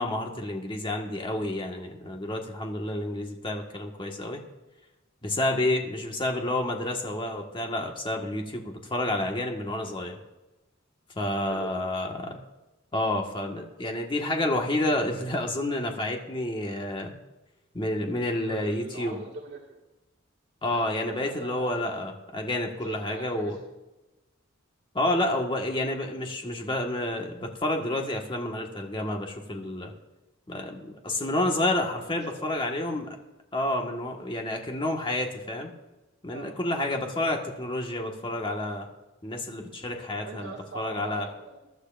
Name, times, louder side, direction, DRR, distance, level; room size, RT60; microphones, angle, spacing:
voice 1, 0.0-4.4 5.2-10.2 11.1-12.4 12.9-17.1 17.7-19.2 20.6-23.5 24.9-29.9 30.5-33.1 33.5-35.7 36.2-38.9 39.2-41.3, left 1 dB, 25° left, 1 dB, 1.6 m, -29 dB
voice 2, 11.4-11.8 18.0-19.8 20.7-22.0 22.7-23.6 32.0-32.5 36.3-36.5 39.9-41.6, right 2 dB, 60° right, -3 dB, 2.1 m, -42 dB
22.5 x 11.5 x 2.6 m, 1.1 s
head